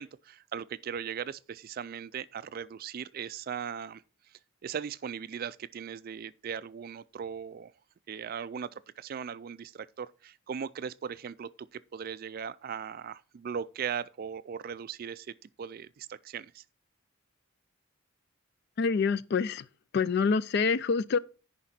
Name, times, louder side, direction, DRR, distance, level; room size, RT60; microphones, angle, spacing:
voice 1, 0.0-4.0 4.6-7.7 8.1-8.7 9.0-16.6, right 7 dB, 45° right, 0.3 m, -38 dB
voice 2, 18.8-19.6 19.9-21.2, left 5 dB, 50° left, 0.4 m, -26 dB
9.9 x 5.1 x 4.2 m
head